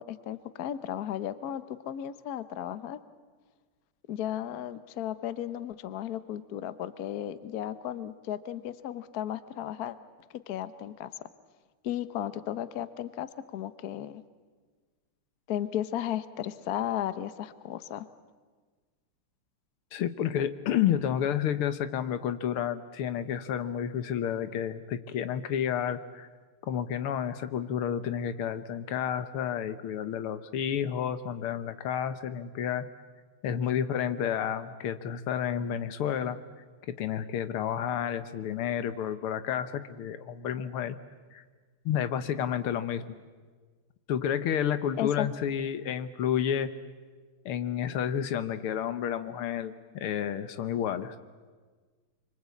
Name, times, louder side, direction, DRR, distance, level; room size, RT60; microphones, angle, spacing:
voice 1, 0.0-3.0 4.1-10.0 10.5-11.1 11.8-14.2 15.5-18.0 45.0-45.3, left 11 dB, 55° left, 13 dB, 1.1 m, -34 dB
voice 2, 19.9-26.3 26.6-32.9 33.4-36.4 36.9-41.0 41.3-41.4 41.9-43.2 44.1-46.7 47.5-51.2, left 9 dB, 80° left, 11 dB, 1.9 m, -30 dB
25.5 x 24.5 x 8.4 m, 1.4 s
omnidirectional pair, 2.4 m